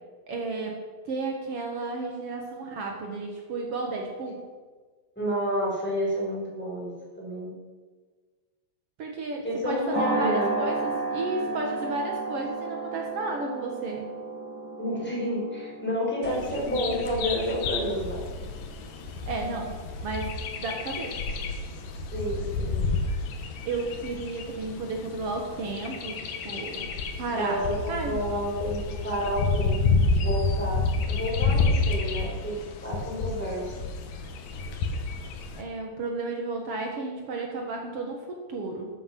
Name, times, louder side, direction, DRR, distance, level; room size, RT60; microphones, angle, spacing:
voice 1, 0.3-0.8 1.0-4.4 9.0-14.1 19.3-20.3 20.6-21.2 23.6-26.2 26.4-26.9 27.2-28.2 35.6-38.9, right 3 dB, 80° right, 1 dB, 1.3 m, -33 dB
voice 2, 5.1-6.9 7.2-7.5 9.4-10.5 14.8-18.2 22.1-22.8 27.3-27.7 28.0-32.5 32.8-33.8 34.5-34.6, equal, ahead, -6 dB, 4.7 m, -30 dB
sound 1, 9.9-18.4, right 3 dB, 25° right, 4.3 m, -33 dB
Bird vocalization bird call bird song, 16.2-35.6, left 3 dB, 65° left, 2.5 m, -30 dB
13.5 x 10.0 x 6.0 m, 1.4 s
omnidirectional pair, 4.9 m